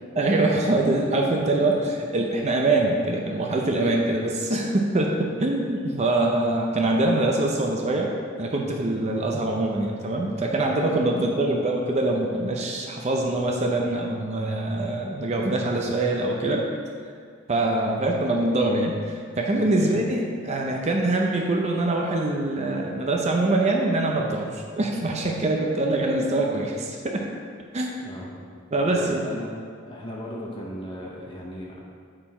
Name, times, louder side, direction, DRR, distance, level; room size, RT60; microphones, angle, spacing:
voice 1, 0.2-8.1 8.4-16.7 17.5-27.2 27.7-27.9 28.7-29.3, right 2 dB, 30° right, 0 dB, 0.6 m, -24 dB
voice 2, 28.9-29.5 29.9-31.8, equal, 25° left, -3 dB, 0.7 m, -36 dB
7.7 x 4.4 x 4.3 m, 2.1 s
head